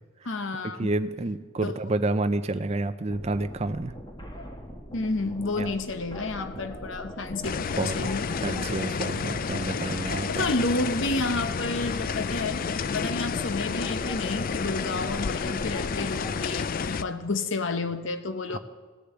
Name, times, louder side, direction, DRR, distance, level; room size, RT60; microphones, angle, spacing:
voice 1, 0.2-0.9 1.6-1.7 4.9-8.3 10.3-12.6 12.9-18.6, left 2 dB, 60° left, 10 dB, 0.9 m, -30 dB
voice 2, 0.8-3.9 5.6-5.7 7.8-8.1 8.4-10.4 18.5-18.6, right 2 dB, 30° right, 10 dB, 0.5 m, -29 dB
sound 1, 3.1-16.5, equal, 20° left, 1.4 m, -41 dB
sound 2, 7.4-17.0, left 5 dB, 40° left, 0.4 m, -30 dB
17.0 x 6.8 x 7.9 m, 1.4 s
head